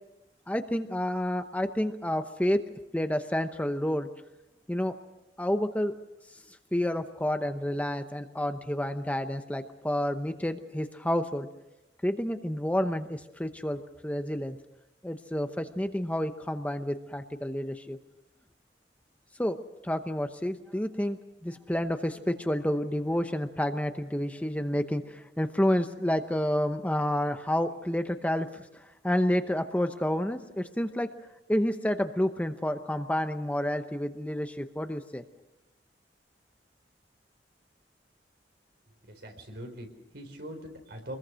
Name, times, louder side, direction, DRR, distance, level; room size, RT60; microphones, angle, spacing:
voice 1, 0.5-2.6 2.9-4.1 4.7-4.9 5.4-5.9 6.7-11.5 12.0-14.6 15.0-18.0 19.4-19.6 19.8-28.6 29.0-31.1 31.5-35.2, left 1 dB, 10° left, 7 dB, 0.8 m, -29 dB
voice 2, 39.1-41.1, equal, 65° right, 4 dB, 4.5 m, -42 dB
25.5 x 21.0 x 6.3 m, 0.94 s
head